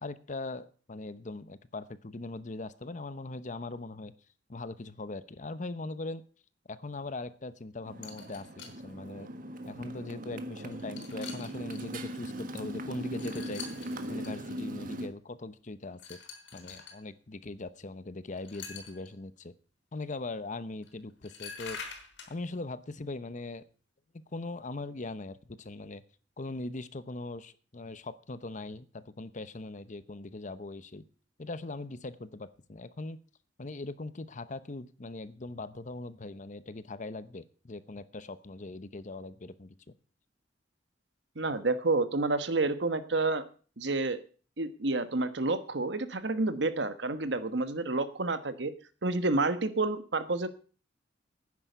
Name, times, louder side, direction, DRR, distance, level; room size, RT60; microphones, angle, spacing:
voice 1, 0.0-4.1 4.5-6.2 6.7-8.5 8.8-9.3 9.7-13.6 14.1-16.2 16.5-19.5 19.9-21.8 22.3-23.6 24.3-26.0 26.4-31.0 31.4-33.2 33.6-39.8, left 2 dB, 40° left, 14 dB, 0.8 m, -40 dB
Motorcycle, 7.9-15.1, equal, 50° right, 1.5 m, -39 dB
sound 1, 8.0-8.8 9.7-9.8 10.6-11.8 13.1-14.3 16.0-17.0 18.4-19.1 20.8-20.9 21.2-22.3, left 5 dB, 75° left, 3.8 m, -45 dB
voice 2, 41.3-43.4 43.8-44.2 44.6-48.7 49.0-50.5, right 3 dB, 70° right, 12 dB, 1.3 m, -29 dB
11.0 x 9.7 x 6.8 m, 0.40 s
head